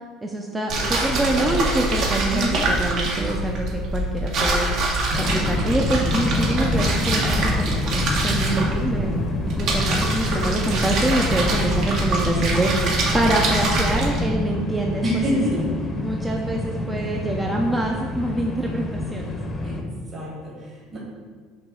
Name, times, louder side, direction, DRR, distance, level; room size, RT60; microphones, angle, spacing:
voice 1, 0.2-9.1 9.6-15.0 15.5-15.6 16.0-19.3, right 2 dB, 10° right, 0 dB, 0.5 m, -26 dB
sound 1, 0.7-14.2, right 1 dB, 55° right, 1.2 m, -24 dB
voice 2, 0.8-1.6 2.3-2.7 15.0-15.7 19.6-19.8 20.1-21.0, equal, 35° right, -6 dB, 1.8 m, -27 dB
sound 2, 5.1-19.8, left 2 dB, 25° left, 0.7 m, -27 dB
6.0 x 3.0 x 5.6 m, 1.6 s
cardioid pair, 130°, 0 cm